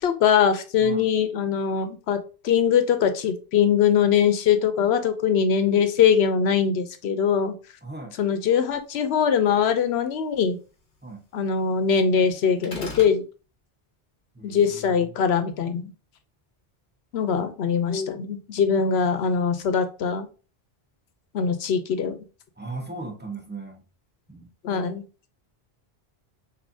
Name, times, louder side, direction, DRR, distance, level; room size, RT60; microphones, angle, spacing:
voice 1, 0.0-7.5 8.2-10.6 11.3-13.2 14.4-15.9 17.1-20.3 21.3-22.2 24.6-25.0, left 7 dB, 85° left, 9 dB, 0.9 m, -22 dB
voice 2, 7.8-8.1 11.0-11.3 14.3-15.1 22.6-23.8 24.3-24.5, right 2 dB, 10° right, 1 dB, 0.9 m, -38 dB
sound 1, 12.6-13.2, left 2 dB, 50° left, 1.2 m, -35 dB
6.2 x 2.8 x 2.7 m, 0.34 s
omnidirectional pair, 1.0 m